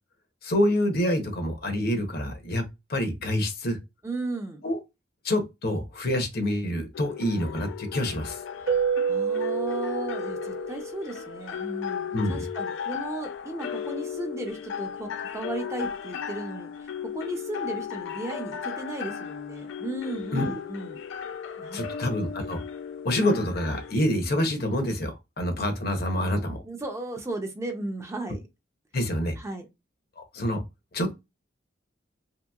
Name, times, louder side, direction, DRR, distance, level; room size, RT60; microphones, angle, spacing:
voice 1, 0.4-2.6 2.9-3.8 4.6-4.8 5.2-8.4 12.1-12.5 20.3-20.6 21.7-22.6 23.0-26.6 28.9-29.3 30.2-30.6 30.9-31.1, left 1 dB, 55° left, 0.8 m, -27 dB
voice 2, 4.0-4.6 8.6-8.7 9.1-21.0 21.6-21.9 26.7-28.4 29.4-29.7, right 2 dB, 15° right, 0.4 m, -35 dB
sound 1, 6.9-23.9, left 8 dB, 75° left, 0.3 m, -35 dB
Keyboard (musical), 8.7-11.2, right 7 dB, 70° right, 0.6 m, -28 dB
2.9 x 2.8 x 2.3 m
head